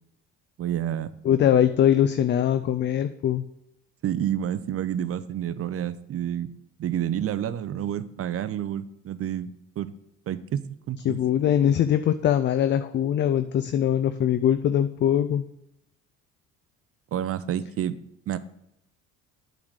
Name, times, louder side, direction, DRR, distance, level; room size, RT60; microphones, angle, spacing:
voice 1, 0.6-1.1 4.0-6.5 6.8-9.5 9.8-9.9 10.3-11.2 17.1-18.0 18.3-18.4, right 10 dB, 35° right, 15 dB, 0.6 m, -29 dB
voice 2, 1.2-3.4 11.1-15.4, left 10 dB, 30° left, 11 dB, 0.4 m, -22 dB
8.4 x 4.0 x 6.5 m, 0.82 s
hypercardioid pair, 65°, 40 cm